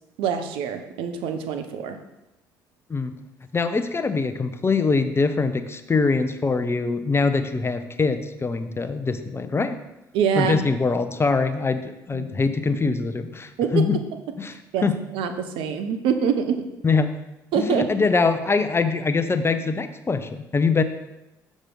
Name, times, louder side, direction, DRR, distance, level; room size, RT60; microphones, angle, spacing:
voice 1, 0.2-2.0 10.1-10.6 12.1-12.3 13.6-13.9 14.7-14.9 15.1-16.6 17.5-17.9, right 7 dB, 65° right, 7 dB, 0.7 m, -24 dB
voice 2, 3.5-9.8 10.4-14.0 14.4-15.0 16.8-17.1 17.6-20.8, left 4 dB, 25° left, 9 dB, 0.7 m, -23 dB
6.5 x 6.2 x 3.8 m, 0.93 s
hypercardioid pair, 50°, 9 cm